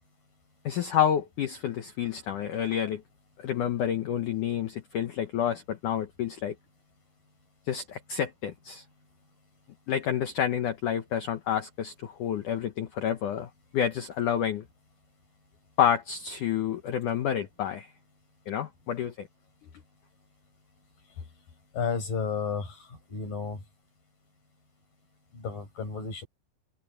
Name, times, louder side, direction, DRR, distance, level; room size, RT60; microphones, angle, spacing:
voice 1, 0.6-3.0 3.4-6.5 7.7-8.8 9.9-14.6 15.8-17.9 18.5-19.3, left 9 dB, 90° left, 1.7 m, -29 dB
voice 2, 21.7-23.6 25.3-26.2, left 5 dB, 45° left, 8.8 m, -32 dB
omnidirectional pair, 5.4 m